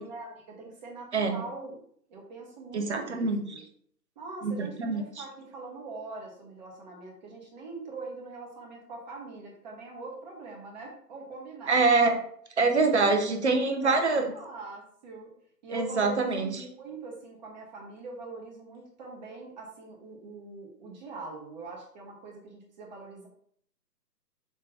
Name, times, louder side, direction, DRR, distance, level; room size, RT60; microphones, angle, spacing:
voice 1, 0.0-1.8 2.1-3.6 4.1-11.8 13.7-15.3 15.6-23.3, right 3 dB, 25° right, -2 dB, 1.6 m, -43 dB
voice 2, 2.7-3.4 4.4-5.0 11.7-12.2 12.6-14.3 15.7-16.5, right 3 dB, 40° right, 5 dB, 0.9 m, -25 dB
6.6 x 3.1 x 5.6 m, 0.62 s
figure-of-eight pair, 150°, 50 cm